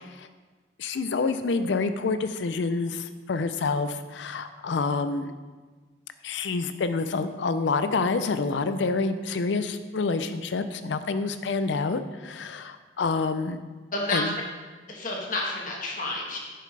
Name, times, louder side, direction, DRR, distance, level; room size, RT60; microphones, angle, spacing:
voice 1, 0.8-5.3 6.2-13.6 14.1-14.3, left 4 dB, 80° left, 11 dB, 0.5 m, -27 dB
voice 2, 13.9-14.3 14.9-16.4, left 2 dB, 45° left, -2 dB, 1.3 m, -30 dB
7.6 x 6.6 x 3.3 m, 1.4 s
head